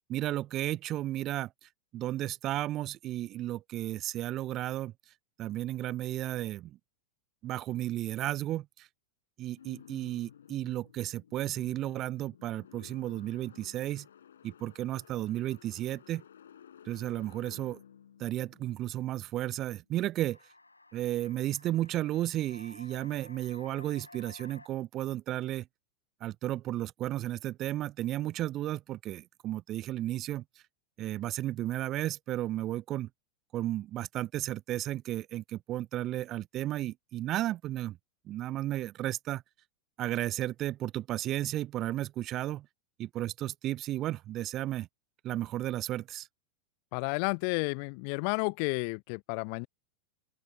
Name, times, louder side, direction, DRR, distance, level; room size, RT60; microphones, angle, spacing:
voice 1, 0.1-4.9 5.4-6.8 7.4-8.9 9.4-14.1 14.4-16.2 16.9-17.8 18.2-20.4 20.9-25.7 26.2-30.4 31.0-33.1 33.5-38.0 38.3-39.4 40.0-42.7 43.0-44.9 45.2-46.3, right 14 dB, 35° right, 0.4 m, -33 dB
sound 1, 9.6-19.5, left 9 dB, 65° left, 5.5 m, -55 dB
sound 2, 20.2-24.7, left 2 dB, 80° left, 7.2 m, -54 dB
voice 2, 46.9-49.7, left 40 dB or more, 45° left, 1.0 m, -31 dB
open air
figure-of-eight pair, 90°, 0 cm